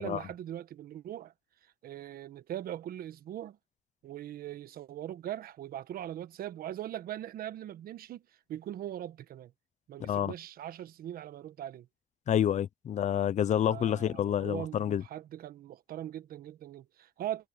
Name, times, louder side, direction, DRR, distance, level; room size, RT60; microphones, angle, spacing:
voice 1, 0.0-1.3 1.8-3.6 4.0-8.2 8.5-9.5 9.9-11.9 13.6-17.5, right 11 dB, 60° right, 1.3 m, -40 dB
voice 2, 10.0-10.3 12.3-15.0, left 10 dB, 45° left, 0.7 m, -28 dB
cardioid pair, 110°, 17 cm